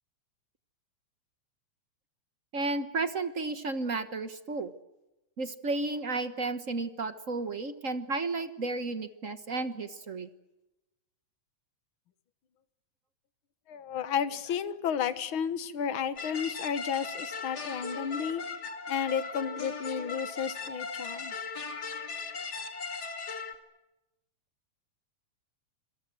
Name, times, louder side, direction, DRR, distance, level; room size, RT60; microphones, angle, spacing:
voice 1, 2.5-4.7 5.4-10.3, right 3 dB, 50° right, 10 dB, 0.9 m, -33 dB
voice 2, 13.7-18.4 18.9-21.3, left 7 dB, 50° left, 12 dB, 1.9 m, -32 dB
sound 1, 16.2-23.5, left 4 dB, 35° left, 2.5 m, -38 dB
27.5 x 23.0 x 7.8 m, 0.96 s
omnidirectional pair, 3.3 m